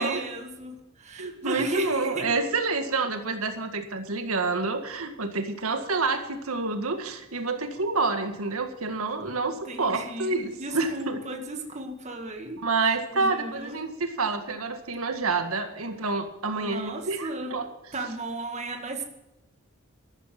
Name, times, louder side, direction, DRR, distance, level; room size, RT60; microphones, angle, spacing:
voice 1, 0.0-2.3 9.7-13.8 16.6-17.6 17.9-19.0, right 2 dB, 30° right, 4 dB, 1.9 m, -35 dB
voice 2, 1.2-11.2 12.6-17.7, right 3 dB, 85° right, 6 dB, 1.8 m, -28 dB
13.0 x 12.5 x 6.1 m, 0.92 s
head